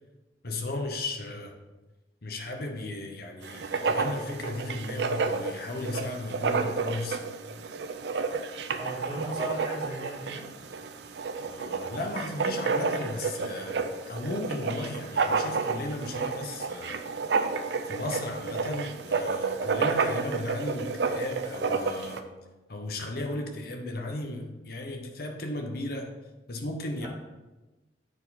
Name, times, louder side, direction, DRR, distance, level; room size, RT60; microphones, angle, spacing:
voice 1, 0.4-1.5 2.2-7.2 11.5-17.1 17.8-22.3 22.7-26.1 26.5-27.1, left 2 dB, 60° left, 4 dB, 0.9 m, -35 dB
Writing, 3.4-22.2, right 4 dB, 75° right, 0.5 m, -30 dB
voice 2, 8.7-10.5 27.0-27.1, right 1 dB, 15° right, -13 dB, 2.0 m, -36 dB
7.9 x 4.5 x 4.1 m, 1.1 s
head